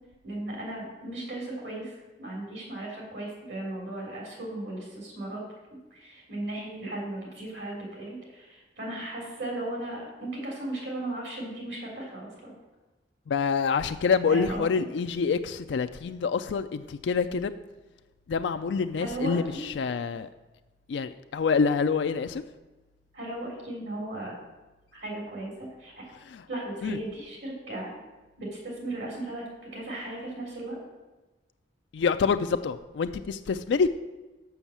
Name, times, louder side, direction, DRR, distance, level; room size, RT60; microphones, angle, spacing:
voice 1, 0.2-5.4 5.9-12.5 14.3-14.6 19.0-19.6 23.1-24.3 24.9-26.0 26.5-27.9 28.4-29.4 29.7-30.8, right 1 dB, 75° right, -1 dB, 3.7 m, -36 dB
voice 2, 13.3-17.5 18.3-20.3 20.9-22.4 26.3-26.4 26.8-27.0 31.9-33.9, left 5 dB, 75° left, 9 dB, 0.4 m, -26 dB
7.0 x 6.2 x 7.2 m, 1.1 s
head